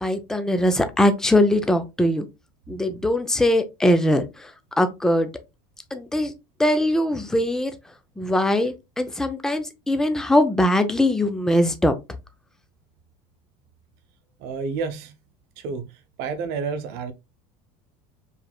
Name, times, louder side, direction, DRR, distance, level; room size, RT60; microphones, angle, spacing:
voice 1, 0.0-2.3 2.7-4.5 4.8-5.3 5.9-6.3 6.6-7.7 8.2-11.9, left 1 dB, 5° left, 0.5 m, -21 dB
voice 2, 2.7-3.0 14.4-15.1 15.6-15.9 16.2-17.1, right 5 dB, 60° right, 0.8 m, -30 dB
4.6 x 3.3 x 2.3 m
supercardioid pair, 115°, 18 cm